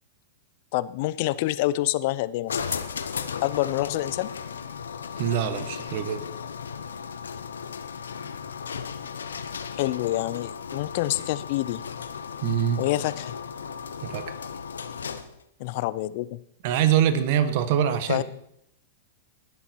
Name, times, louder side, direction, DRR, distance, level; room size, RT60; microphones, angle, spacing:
voice 1, 0.7-2.6 3.4-4.3 9.7-11.8 12.8-13.3 15.6-16.4 18.1-18.2, left 16 dB, 55° left, 17 dB, 0.6 m, -27 dB
sound 1, 2.5-15.4, left 6 dB, 85° left, 0.9 m, -35 dB
voice 2, 5.2-6.2 12.4-12.8 14.0-14.3 16.6-18.2, right 9 dB, 55° right, 10 dB, 1.4 m, -24 dB
19.5 x 7.1 x 4.6 m, 0.76 s
hypercardioid pair, 110°, 0 cm